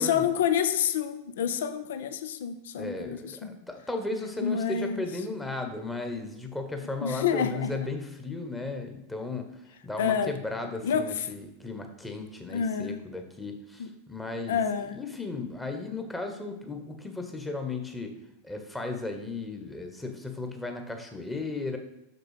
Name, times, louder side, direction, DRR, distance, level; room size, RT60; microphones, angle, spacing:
voice 1, 0.0-3.6 4.4-5.1 7.0-7.7 10.0-10.3 10.8-11.3 12.5-13.0 13.8-13.9 14.5-15.0, left 8 dB, 60° left, 11 dB, 0.6 m, -28 dB
voice 2, 2.8-9.5 9.8-14.6 14.9-18.1 18.4-21.8, left 3 dB, 10° left, 4 dB, 1.3 m, -35 dB
6.8 x 6.6 x 5.0 m, 0.87 s
figure-of-eight pair, 90°, 0 cm